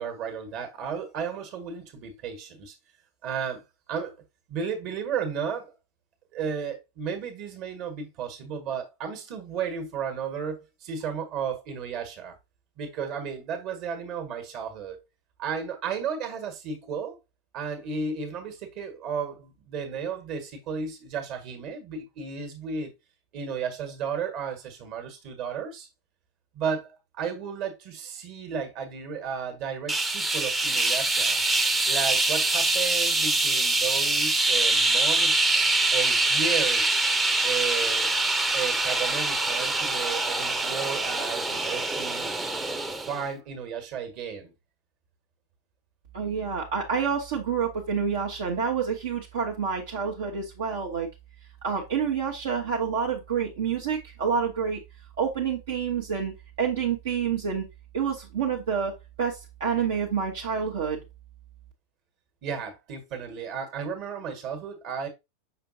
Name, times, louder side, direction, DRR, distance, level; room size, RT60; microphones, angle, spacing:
voice 1, 0.0-2.7 3.2-3.6 3.9-4.1 4.5-5.7 6.3-12.4 12.8-15.0 15.4-17.2 17.5-22.9 23.3-25.9 26.5-31.4 31.9-35.5 35.9-37.0 37.4-38.1 38.5-42.3 43.1-44.5 62.4-65.1, right 6 dB, 40° right, 1.6 m, -33 dB
sound 1, 29.9-43.2, right 2 dB, 10° right, 0.8 m, -24 dB
voice 2, 46.1-51.1 51.6-54.8 55.2-56.3 56.6-57.6 57.9-61.0, right 6 dB, 60° right, 1.2 m, -28 dB
6.6 x 5.5 x 2.7 m
figure-of-eight pair, 90°, 0 cm